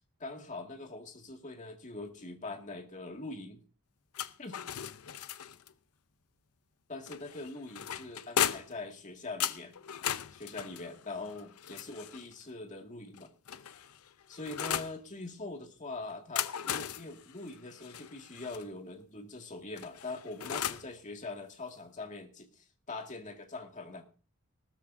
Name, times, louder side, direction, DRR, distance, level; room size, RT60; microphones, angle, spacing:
voice 1, 0.2-3.6 4.4-4.6 6.9-9.8 10.3-13.3 14.3-24.1, left 2 dB, 35° left, 4 dB, 2.1 m, -43 dB
sound 1, 4.1-5.7 7.1-8.8 9.4-12.3 13.1-15.0 16.1-18.6 19.8-20.9, left 9 dB, 85° left, 0.6 m, -37 dB
18.5 x 13.5 x 2.6 m, 0.35 s
head